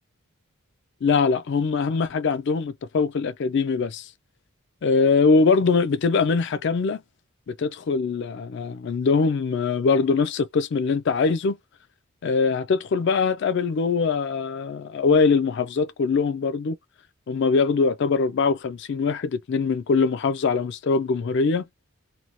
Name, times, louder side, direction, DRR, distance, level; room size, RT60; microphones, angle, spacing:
voice 1, 1.0-4.1 4.8-7.0 7.5-11.6 12.2-16.8 17.3-21.6, left 4 dB, 55° left, 0.4 m, -22 dB
2.7 x 2.2 x 2.9 m
head